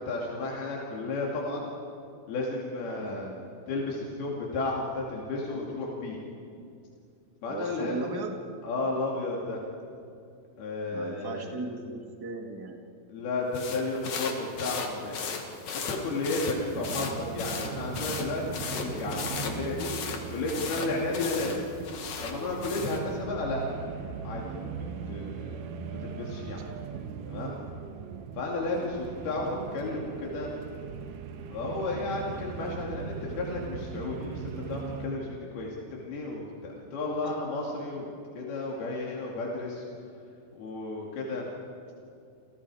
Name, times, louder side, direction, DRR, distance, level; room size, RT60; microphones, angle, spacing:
voice 1, 0.0-1.7 2.3-3.3 3.7-6.2 7.4-8.0 8.6-9.6 10.6-11.5 13.1-15.2 15.7-19.9 20.3-21.6 22.2-23.6 24.2-25.7 26.0-26.6 27.3-27.6 28.4-30.5 31.5-38.1 38.4-39.8 40.6-41.4, left 2 dB, 90° left, -2 dB, 4.6 m, -33 dB
voice 2, 3.0-3.4 7.5-8.4 10.9-12.8 28.7-28.9, right 2 dB, 20° right, 2 dB, 0.5 m, -37 dB
sound 1, 13.5-23.1, left 5 dB, 55° left, 2.8 m, -37 dB
sound 2, 16.7-35.1, right 6 dB, 70° right, 2.5 m, -39 dB
29.5 x 28.5 x 4.9 m, 2.5 s
omnidirectional pair, 4.3 m